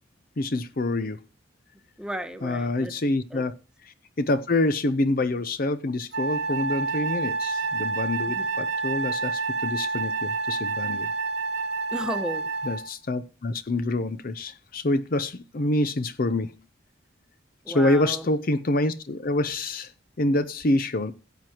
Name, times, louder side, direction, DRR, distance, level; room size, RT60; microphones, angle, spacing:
voice 1, 0.4-1.2 2.4-3.5 3.8-11.1 12.6-16.6 17.7-19.9 20.2-21.1, left 2 dB, 45° left, 0.6 m, -26 dB
voice 2, 2.0-2.9 3.3-3.4 8.3-8.5 11.9-12.5 17.6-18.3, equal, 5° right, 1.1 m, -33 dB
Wind instrument woodwind instrument, 6.1-12.9, right 3 dB, 55° right, 1.2 m, -28 dB
16.5 x 7.7 x 2.9 m
head